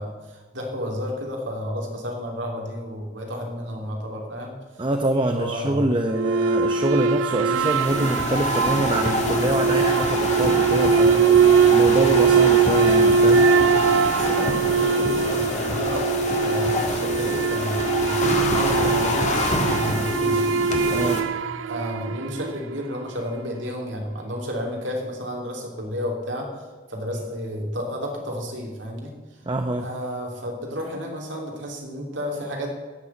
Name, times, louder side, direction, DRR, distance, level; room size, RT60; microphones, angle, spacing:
voice 1, 0.0-4.5 5.3-5.9 14.1-20.5 21.6-26.5 26.9-29.1 29.8-32.9, equal, 70° right, 0 dB, 3.3 m, -31 dB
voice 2, 4.8-11.2 11.7-13.5 20.9-21.3 29.5-29.9, right 1 dB, 25° right, 5 dB, 0.7 m, -25 dB
sound 1, 6.1-22.7, right 5 dB, 85° right, 0.5 m, -21 dB
sound 2, 7.5-21.2, left 1 dB, 35° left, 1.7 m, -26 dB
14.5 x 6.8 x 9.7 m, 1.3 s
head